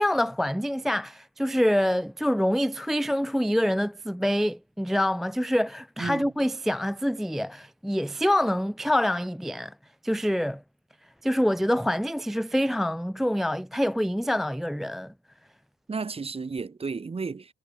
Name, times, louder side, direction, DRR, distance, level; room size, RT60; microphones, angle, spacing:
voice 1, 0.0-9.7 10.0-10.6 11.2-15.1, equal, ahead, 0.4 m, -26 dB
voice 2, 6.0-6.3 15.9-17.5, right 4 dB, 30° right, 2.3 m, -33 dB
cardioid pair, 90°, 20 cm